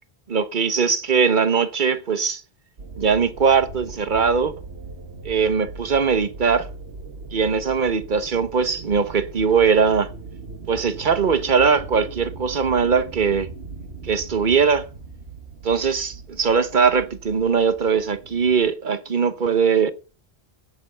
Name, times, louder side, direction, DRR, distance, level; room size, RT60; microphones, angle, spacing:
voice 1, 0.3-2.4 3.0-4.5 5.2-6.7 7.3-10.1 10.7-13.5 14.0-14.9 15.6-19.9, right 5 dB, 50° right, 1.1 m, -20 dB
sound 1, 2.8-18.7, right 3 dB, 80° right, 1.7 m, -39 dB
9.5 x 9.4 x 6.8 m
omnidirectional pair, 1.0 m